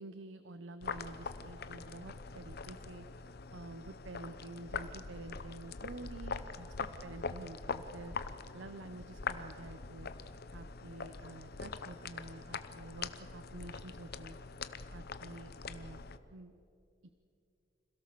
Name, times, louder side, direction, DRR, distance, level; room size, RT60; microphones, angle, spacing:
voice 1, 0.0-3.1 3.5-8.2 8.5-10.1 10.5-14.4 14.9-16.0 16.3-16.5, right 2 dB, 75° right, 11 dB, 0.8 m, -49 dB
sound 1, 0.8-16.2, left 4 dB, 55° left, 0.8 m, -43 dB
26.5 x 17.0 x 6.8 m, 2.7 s
head